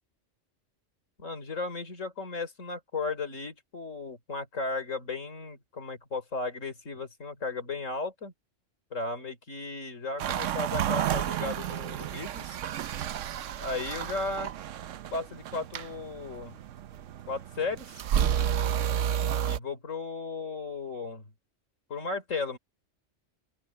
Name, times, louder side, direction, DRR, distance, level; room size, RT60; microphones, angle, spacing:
voice 1, 1.2-8.3 8.9-12.6 13.6-14.5 15.1-16.6 17.3-18.0 19.4-21.3 21.9-22.6, left 3 dB, 85° left, 3.9 m, -35 dB
sound 1, 10.2-19.6, right 10 dB, 80° right, 1.0 m, -31 dB
open air
omnidirectional pair, 1.3 m